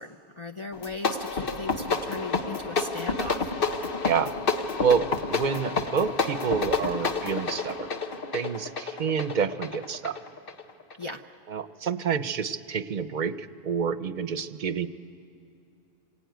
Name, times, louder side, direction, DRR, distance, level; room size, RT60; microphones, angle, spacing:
voice 1, 0.0-3.5 11.0-11.2, left 2 dB, 30° left, 2 dB, 0.7 m, -37 dB
sound 1, 0.7-11.0, left 4 dB, 55° left, 1.2 m, -29 dB
voice 2, 4.8-7.9 8.3-10.2 11.5-14.9, right 6 dB, 50° right, 12 dB, 0.8 m, -28 dB
26.0 x 20.5 x 9.3 m, 2.5 s
omnidirectional pair, 1.1 m